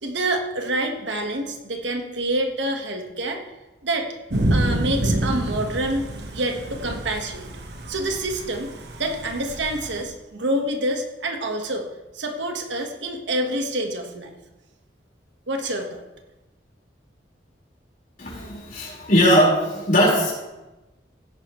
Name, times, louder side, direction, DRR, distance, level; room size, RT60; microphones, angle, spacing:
voice 1, 0.0-3.4 3.8-4.1 4.5-7.5 7.9-8.7 9.0-11.9 12.1-14.3 15.5-16.0, right 1 dB, 80° right, 3 dB, 1.5 m, -27 dB
Thunder / Rain, 4.3-10.0, right 1 dB, 65° right, 1.3 m, -27 dB
voice 2, 18.2-20.3, equal, 45° left, -4 dB, 4.6 m, -19 dB
16.0 x 9.7 x 3.2 m, 1.1 s
head